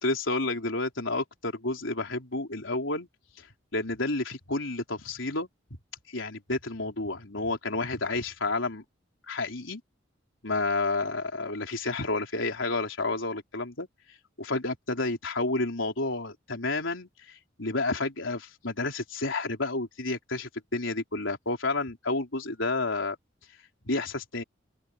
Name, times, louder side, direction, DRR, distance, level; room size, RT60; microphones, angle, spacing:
voice 1, 0.0-3.1 3.4-3.5 3.7-5.5 6.1-8.8 9.3-9.8 10.4-13.9 14.4-23.2 23.8-24.4, left 2 dB, 80° left, 4.1 m, -30 dB
open air
head